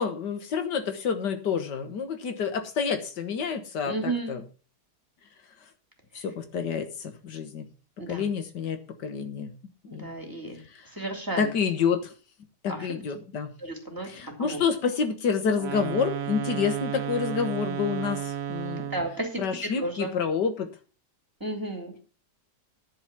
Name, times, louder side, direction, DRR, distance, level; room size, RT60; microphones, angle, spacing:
voice 1, 0.0-4.4 6.1-7.7 8.1-9.5 9.9-10.1 10.7-10.9 11.4-12.1 12.6-13.5 14.0-18.8 19.4-20.7, left 6 dB, 80° left, 7 dB, 1.9 m, -28 dB
voice 2, 3.9-4.4 8.0-8.3 9.9-10.6 10.9-11.5 12.7-12.9 13.6-14.1 14.4-14.6 18.8-19.4 19.8-20.1 21.4-21.9, right 2 dB, 10° right, 1 dB, 2.9 m, -33 dB
sound 1, 15.5-19.2, right 10 dB, 60° right, 1.2 m, -33 dB
10.5 x 5.8 x 7.2 m, 0.37 s
omnidirectional pair, 1.8 m